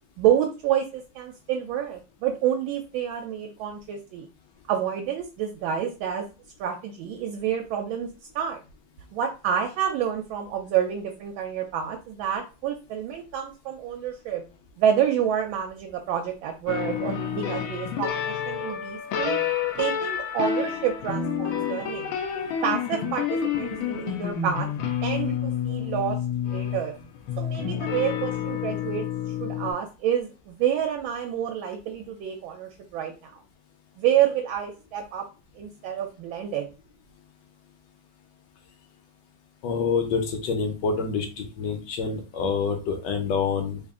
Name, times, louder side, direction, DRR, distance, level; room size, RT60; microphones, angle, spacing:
voice 1, 0.2-4.3 4.7-6.3 6.6-8.1 8.3-8.6 9.1-14.4 14.8-19.4 19.8-22.1 22.6-24.7 25.0-26.2 26.4-26.9 27.4-29.1 29.4-33.3 34.0-35.3 35.6-36.7, right 9 dB, 75° right, 3 dB, 1.3 m, -28 dB
sound 1, 16.7-29.7, left 8 dB, 80° left, 1.4 m, -29 dB
voice 2, 39.6-43.8, left 5 dB, 65° left, 4 dB, 1.3 m, -27 dB
3.6 x 2.4 x 3.6 m, 0.32 s
omnidirectional pair, 2.3 m